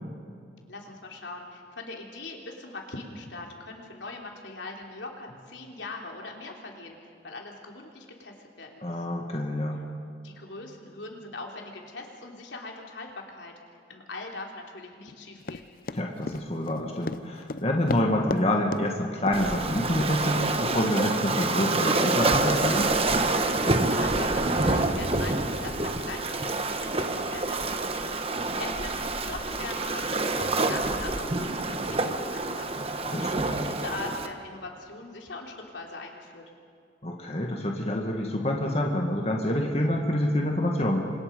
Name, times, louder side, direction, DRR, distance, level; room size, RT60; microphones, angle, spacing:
voice 1, 0.7-9.0 10.2-13.5 13.9-15.7 23.8-27.9 28.6-32.8 33.6-36.4, left 3 dB, 80° left, 1 dB, 3.5 m, -41 dB
voice 2, 8.8-9.8 15.9-22.9 33.1-33.6 37.0-41.0, left 1 dB, 35° left, 1 dB, 1.9 m, -27 dB
Run, 15.5-18.4 18.7-18.9 19.3-19.5 20.0-20.1 20.7-20.8, left 3 dB, 50° left, 0.6 m, -34 dB
Waves surf, 19.3-34.3, right 2 dB, 30° right, 1.3 m, -27 dB
29.0 x 25.5 x 5.4 m, 2.4 s
head